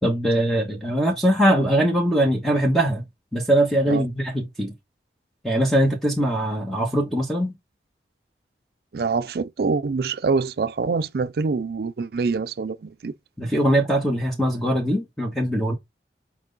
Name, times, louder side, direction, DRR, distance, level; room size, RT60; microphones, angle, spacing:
voice 1, 0.0-3.0 3.3-4.7 5.4-7.5 13.4-15.7, right 1 dB, ahead, 1.2 m, -21 dB
voice 2, 8.9-13.1, right 4 dB, 60° right, 0.4 m, -25 dB
6.1 x 4.4 x 3.9 m
head